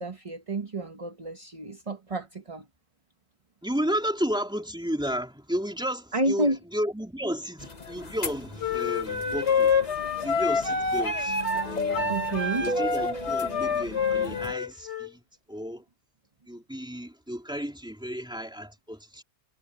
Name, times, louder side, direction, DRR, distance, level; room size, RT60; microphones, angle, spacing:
voice 1, 0.0-2.7 6.1-6.6 12.1-12.7, right 1 dB, 25° right, 1.2 m, -30 dB
voice 2, 3.6-9.7 10.2-11.4 11.6-12.1 12.6-15.2 15.5-15.8 16.5-19.2, equal, 5° right, 3.5 m, -33 dB
sound 1, 7.6-14.5, left 2 dB, 30° left, 1.2 m, -36 dB
sound 2, 8.6-15.1, left 4 dB, 50° left, 3.8 m, -27 dB
omnidirectional pair, 1.4 m